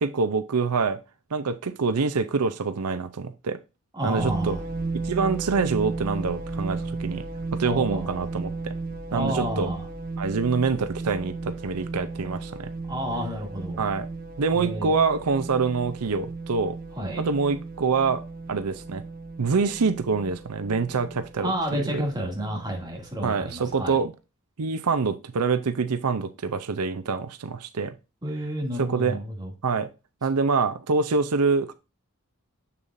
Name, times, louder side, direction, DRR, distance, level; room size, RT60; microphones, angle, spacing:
voice 1, 0.0-1.0 1.3-3.6 4.0-4.6 5.0-7.2 7.5-8.7 9.1-9.7 10.2-12.7 13.8-14.1 14.4-16.8 17.2-18.2 18.5-19.0 19.4-22.0 23.2-24.1 24.6-27.9 28.8-29.2 29.6-29.9 30.2-31.7, right 4 dB, 85° right, 0.6 m, -25 dB
voice 2, 3.9-4.6 7.6-8.3 9.1-9.9 12.9-13.8 14.5-15.0 16.9-17.2 21.4-24.0 28.2-29.5, equal, 20° right, 2.4 m, -30 dB
sound 1, 4.2-23.7, right 3 dB, 40° right, 1.1 m, -35 dB
7.3 x 6.8 x 2.6 m
head